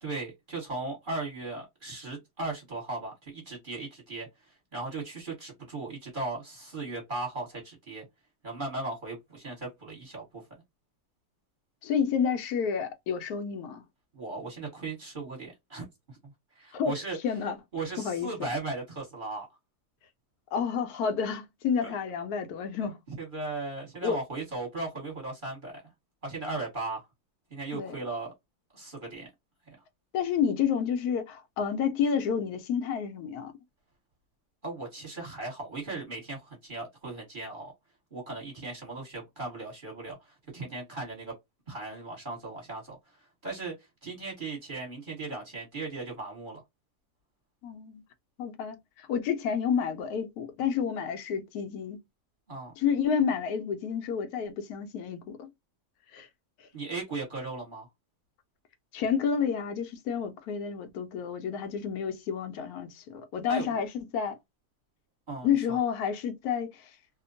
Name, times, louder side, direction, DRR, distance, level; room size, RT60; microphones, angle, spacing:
voice 1, 0.0-4.3 4.7-8.0 8.4-10.2 14.1-15.8 16.2-17.2 17.7-19.5 21.8-21.9 23.1-25.7 26.2-27.0 27.5-28.3 28.7-29.3 34.6-37.7 38.1-40.2 40.5-41.3 41.7-43.0 43.4-43.7 44.0-46.6 52.5-52.7 56.7-57.9 63.5-63.8 65.3-65.8, right 3 dB, 35° right, 1.3 m, -37 dB
voice 2, 11.8-13.8 16.7-16.9 17.2-17.6 18.0-18.5 20.5-23.0 24.0-24.2 27.7-28.0 30.1-33.5 47.6-48.0 48.4-52.0 52.8-55.5 56.1-56.3 58.9-64.4 65.4-66.9, left 7 dB, 75° left, 1.0 m, -30 dB
2.8 x 2.1 x 2.5 m
omnidirectional pair, 1.7 m